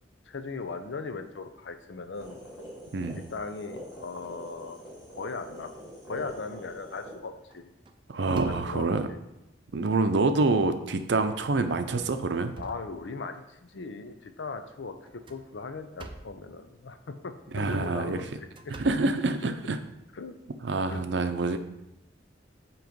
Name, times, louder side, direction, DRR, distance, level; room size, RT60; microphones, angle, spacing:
voice 1, 0.3-2.4 3.2-4.8 5.1-5.7 6.1-7.7 8.4-9.2 10.0-10.1 12.6-18.2 20.1-20.3 20.9-21.0, left 4 dB, 85° left, 9 dB, 0.6 m, -38 dB
sound 1, 2.1-7.1, equal, 5° right, 2.6 m, -45 dB
sound 2, 6.0-6.5 6.9-7.2 7.5-9.1 9.8-9.9 10.3-10.4 11.4-11.6 12.1-13.5 15.0-16.5 17.6-19.9, right 2 dB, 25° right, 0.5 m, -48 dB
voice 2, 8.1-9.0 9.7-12.6 17.5-18.2 18.8-19.8 20.6-21.6, right 3 dB, 75° right, 8 dB, 0.6 m, -26 dB
7.7 x 3.1 x 5.1 m, 0.89 s
head